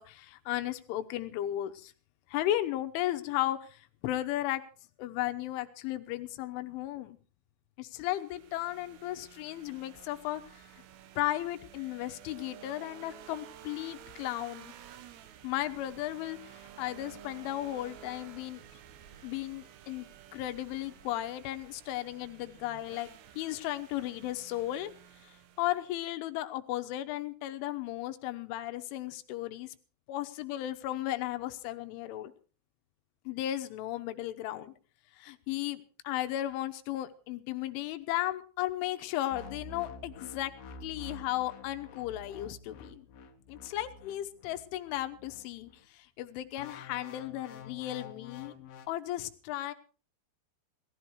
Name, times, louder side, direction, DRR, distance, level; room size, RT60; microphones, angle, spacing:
voice 1, 0.0-1.9 2.3-4.6 5.0-7.2 7.8-10.6 11.2-14.7 15.4-18.8 19.2-20.1 20.3-23.1 23.4-24.9 25.2-29.8 30.1-32.3 33.3-34.7 35.2-40.5 40.8-43.1 43.5-48.5 48.9-49.7, left 14 dB, 90° left, 9 dB, 3.5 m, -35 dB
sound 1, 8.1-25.9, right 10 dB, 70° right, 3.1 m, -53 dB
sound 2, 39.3-45.8 46.6-48.9, left 4 dB, 65° left, 2.4 m, -48 dB
18.0 x 13.5 x 4.7 m, 0.37 s
omnidirectional pair, 5.4 m